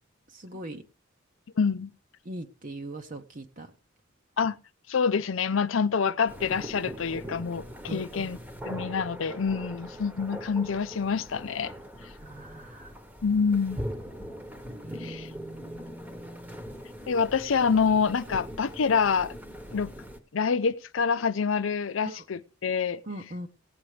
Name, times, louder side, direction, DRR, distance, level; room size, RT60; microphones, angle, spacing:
voice 1, 0.3-0.8 2.2-3.7 7.9-8.3 9.6-9.7 12.2-12.9 14.8-16.7 22.1-22.2 23.1-23.5, right 1 dB, 40° right, 0.8 m, -41 dB
voice 2, 1.6-1.9 4.4-4.6 4.9-8.4 8.6-11.7 13.2-13.8 15.0-15.3 17.1-19.4 19.7-19.9 20.3-23.0, left 5 dB, 75° left, 0.5 m, -26 dB
sound 1, 6.3-20.2, equal, 10° right, 1.1 m, -41 dB
18.0 x 8.5 x 3.3 m
head